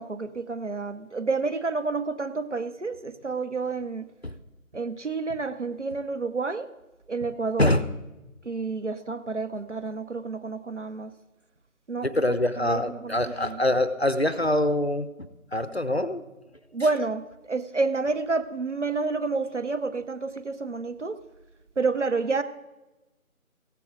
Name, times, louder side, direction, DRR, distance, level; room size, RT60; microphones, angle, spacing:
voice 1, 0.0-4.1 4.7-6.7 7.1-7.7 8.4-11.1 11.9-12.1 12.6-13.6 16.7-21.2 21.8-22.4, right 3 dB, 55° right, 10 dB, 0.8 m, -29 dB
voice 2, 12.0-16.2, left 1 dB, 45° left, 12 dB, 0.6 m, -25 dB
16.0 x 7.5 x 3.9 m, 1.0 s
figure-of-eight pair, 165°, 43 cm